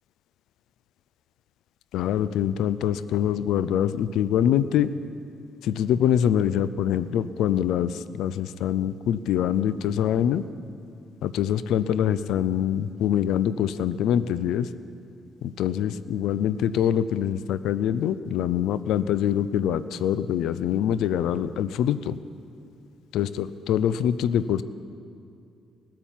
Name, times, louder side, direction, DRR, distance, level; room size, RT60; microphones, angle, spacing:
voice 1, 1.9-4.9 5.6-10.5 11.2-14.7 15.4-22.2 23.1-24.6, left 10 dB, 85° left, 15 dB, 0.5 m, -24 dB
18.5 x 10.5 x 7.4 m, 2.6 s
cardioid pair, 90°, 0 cm